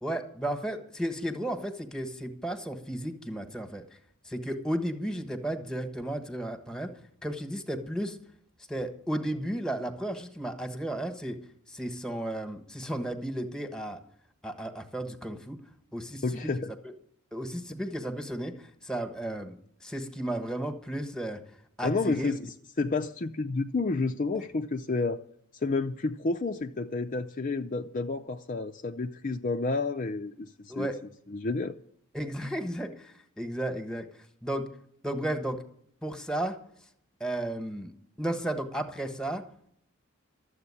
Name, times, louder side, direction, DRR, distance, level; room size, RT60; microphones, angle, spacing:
voice 1, 0.0-3.8 4.2-6.9 7.2-8.2 8.7-11.4 11.7-14.0 14.4-15.6 15.9-16.5 16.8-16.9 17.3-21.4 21.8-22.3 30.7-31.0 32.1-34.1 34.4-34.7 35.0-35.6 36.0-36.6 37.2-37.9 38.2-39.4, right 1 dB, 5° left, 1.2 m, -34 dB
voice 2, 16.2-16.7 21.8-25.2 25.5-30.9 31.3-31.7, left 3 dB, 35° left, 0.5 m, -30 dB
13.5 x 7.9 x 9.7 m
head